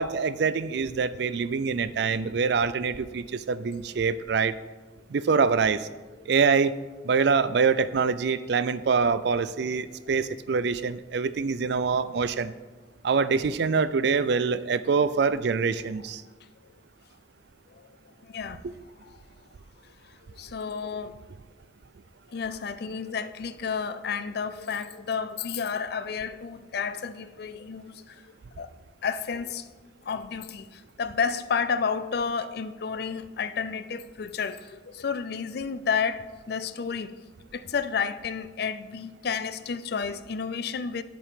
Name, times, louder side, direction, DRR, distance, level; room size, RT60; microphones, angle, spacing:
voice 1, 0.0-4.5 5.1-5.9 6.3-6.7 7.0-12.5 13.0-16.2 18.6-18.7, right 5 dB, 60° right, 0.4 m, -25 dB
voice 2, 18.3-18.6 20.4-21.1 22.3-28.1 28.6-28.7 29.0-29.6 30.1-37.2 37.5-41.0, left 6 dB, 55° left, 0.4 m, -31 dB
10.0 x 8.3 x 3.7 m
head